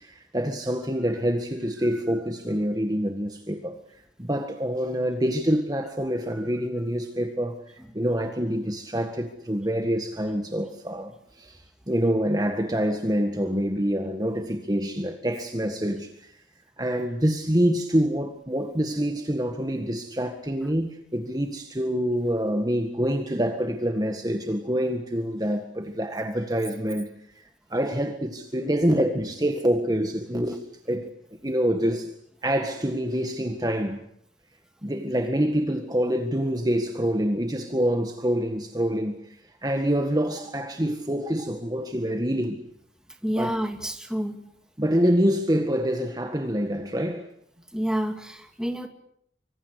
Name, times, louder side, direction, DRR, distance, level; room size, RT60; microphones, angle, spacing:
voice 1, 0.0-16.4 16.8-27.1 27.3-32.1 32.4-34.0 34.8-42.6 43.4-43.6 44.8-47.3, equal, 20° right, 1.7 m, -26 dB
voice 2, 43.2-44.4 47.7-48.9, equal, 5° right, 2.6 m, -29 dB
25.5 x 25.0 x 8.2 m
head